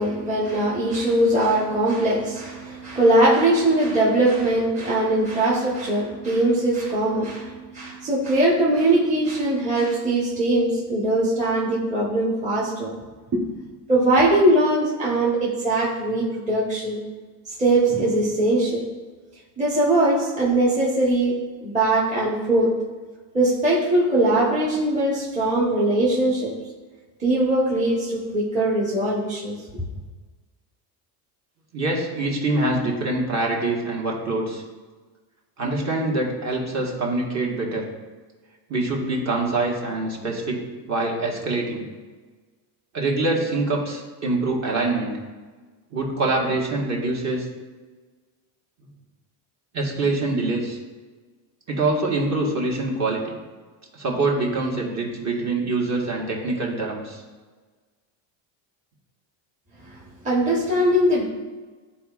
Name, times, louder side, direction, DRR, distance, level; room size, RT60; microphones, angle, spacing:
voice 1, 0.0-12.9 13.3-13.5 13.9-17.0 17.6-18.9 19.6-22.8 23.3-26.6 27.2-29.8 60.2-61.2, right 1 dB, 15° right, -6 dB, 1.1 m, -21 dB
voice 2, 31.7-34.6 35.6-37.9 38.7-40.6 40.9-41.8 42.9-45.1 45.9-47.5 49.7-50.8 51.7-53.3 53.9-57.2, right 2 dB, 35° right, -1 dB, 1.5 m, -24 dB
12.0 x 4.2 x 2.4 m, 1.4 s
cardioid pair, 135°, 47 cm